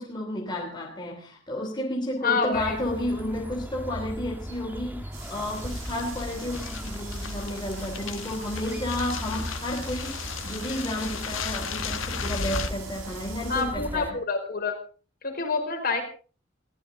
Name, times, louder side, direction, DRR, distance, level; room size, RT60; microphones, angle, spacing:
voice 1, 0.0-14.2, left 1 dB, 25° left, -1 dB, 3.2 m, -32 dB
voice 2, 2.2-2.8 13.5-14.7 15.2-16.0, left 4 dB, 50° left, 4 dB, 5.3 m, -27 dB
sound 1, 2.5-14.1, equal, 10° right, 1.6 m, -38 dB
sound 2, 5.1-13.6, right 5 dB, 85° right, 6.8 m, -45 dB
sound 3, 5.2-12.7, left 5 dB, 85° left, 1.8 m, -36 dB
22.5 x 15.5 x 4.0 m, 0.38 s
head